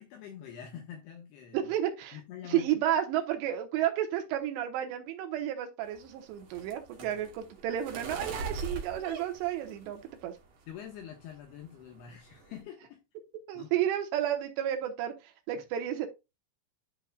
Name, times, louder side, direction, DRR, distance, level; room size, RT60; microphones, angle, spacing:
voice 1, 0.0-1.7 2.1-2.7 7.0-7.1 10.7-13.0 13.5-13.7, left 9 dB, 75° left, 3.0 m, -45 dB
voice 2, 1.5-10.3 13.5-16.1, right 11 dB, 80° right, 3.2 m, -32 dB
sound 1, 5.9-10.3 10.7-11.1 11.4-11.7 12.0-12.6, right 4 dB, 55° right, 3.2 m, -41 dB
11.5 x 5.4 x 2.3 m
omnidirectional pair, 4.9 m